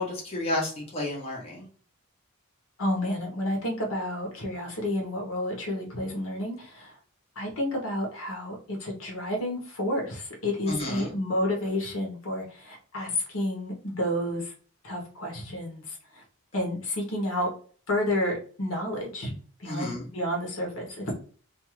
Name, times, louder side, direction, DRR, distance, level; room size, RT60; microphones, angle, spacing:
voice 1, 0.0-1.7 10.7-11.1 19.7-20.0, left 1 dB, 25° left, -3 dB, 0.8 m, -31 dB
voice 2, 2.8-6.9 7.4-14.5 14.8-16.2 16.5-17.5 17.9-19.3 19.6-21.1, left 1 dB, 60° left, 0 dB, 0.9 m, -30 dB
2.5 x 2.4 x 3.0 m, 0.43 s
head